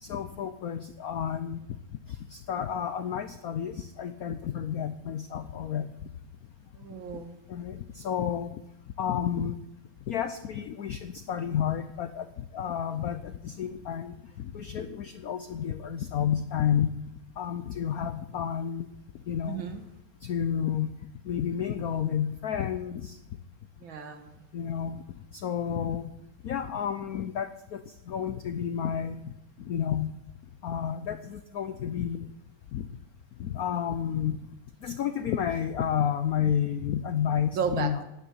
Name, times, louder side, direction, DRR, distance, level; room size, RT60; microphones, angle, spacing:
voice 1, 0.0-1.6 2.3-5.9 7.5-8.6 9.0-9.6 10.1-12.3 12.5-16.9 17.4-18.9 19.3-19.6 20.2-20.9 21.2-23.2 24.5-25.0 25.3-26.1 26.4-29.2 29.6-30.1 30.6-32.3 32.7-32.9 33.4-34.4 34.8-38.0, left 8 dB, 85° left, 11 dB, 0.8 m, -31 dB
voice 2, 6.8-7.3 19.5-19.8 23.8-24.3 37.6-38.0, right 6 dB, 65° right, 6 dB, 2.2 m, -33 dB
10.0 x 9.5 x 9.7 m, 0.85 s
omnidirectional pair, 2.4 m